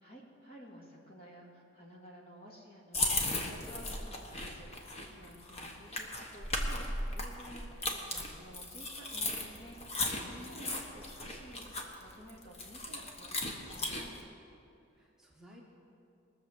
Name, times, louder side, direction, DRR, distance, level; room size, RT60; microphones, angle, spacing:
voice 1, 0.0-4.7 5.0-14.1, equal, 50° left, -2 dB, 2.4 m, -53 dB
sound 1, 2.9-14.2, left 2 dB, 30° left, 1.2 m, -37 dB
voice 2, 10.2-10.9 14.9-15.6, left 1 dB, 5° right, -4 dB, 1.2 m, -54 dB
20.5 x 7.1 x 6.2 m, 2.6 s
head